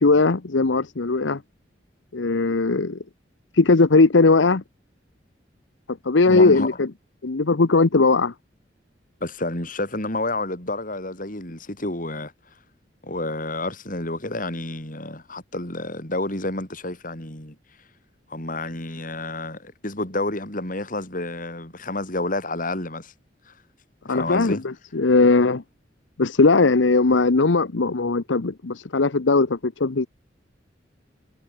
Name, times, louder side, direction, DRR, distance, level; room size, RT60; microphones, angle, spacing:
voice 1, 0.0-1.4 2.1-3.0 3.5-4.6 5.9-6.9 7.2-8.3 24.1-25.6 26.2-30.1, left 3 dB, 90° left, 0.9 m, -19 dB
voice 2, 6.3-6.8 9.2-12.3 13.0-17.6 18.3-23.1 23.5-23.6 24.1-24.6, left 2 dB, 45° left, 5.4 m, -29 dB
head